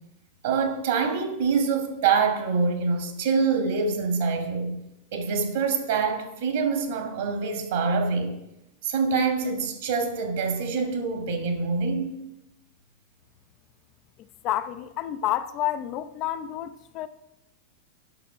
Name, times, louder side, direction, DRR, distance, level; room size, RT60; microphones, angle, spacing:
voice 1, 0.4-4.8 5.1-8.3 8.8-12.2, right 5 dB, 55° right, 2.0 m, -25 dB
voice 2, 14.2-17.1, left 12 dB, 40° left, 0.5 m, -30 dB
8.9 x 6.3 x 6.6 m
figure-of-eight pair, 90°, 0 cm